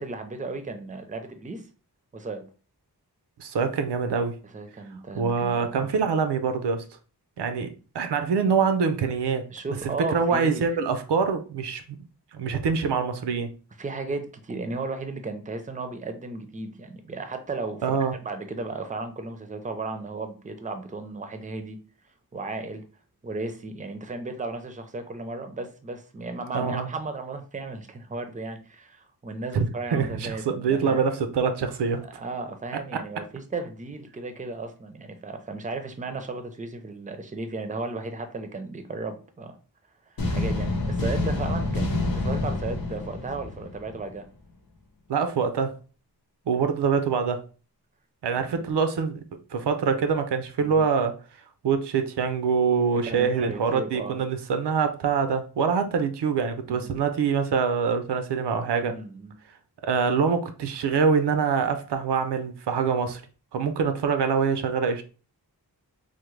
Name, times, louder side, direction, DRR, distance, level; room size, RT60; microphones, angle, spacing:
voice 1, 0.0-1.7 2.1-2.4 4.5-5.9 9.5-10.6 13.8-21.8 22.3-22.8 23.2-31.0 32.0-39.6 40.1-44.3 48.4-48.7 50.6-50.8 52.9-54.2 56.7-56.9 58.9-59.3, right 3 dB, 20° right, 0.5 m, -35 dB
voice 2, 3.4-4.3 5.1-6.8 7.4-9.4 9.8-11.8 12.3-13.5 17.8-18.1 26.5-26.9 29.5-32.0 45.1-45.7 46.5-47.4 48.2-49.2 49.5-51.1 51.6-59.0 59.8-63.2 63.5-65.0, right 5 dB, 90° right, 0.5 m, -25 dB
sound 1, 40.2-44.1, left 2 dB, 65° left, 0.8 m, -27 dB
3.5 x 2.1 x 3.1 m
wide cardioid pair, 65°, 39 cm